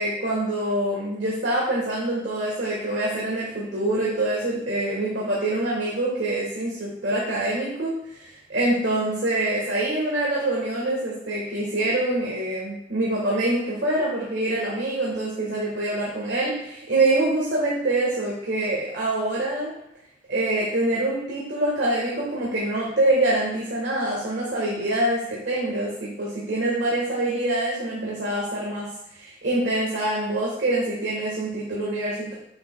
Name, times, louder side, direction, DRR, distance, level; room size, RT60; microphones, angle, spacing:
voice 1, 0.0-19.7 20.3-28.9 29.1-32.3, right 1 dB, 70° right, -5 dB, 1.4 m, -25 dB
7.8 x 5.8 x 2.2 m, 0.79 s
head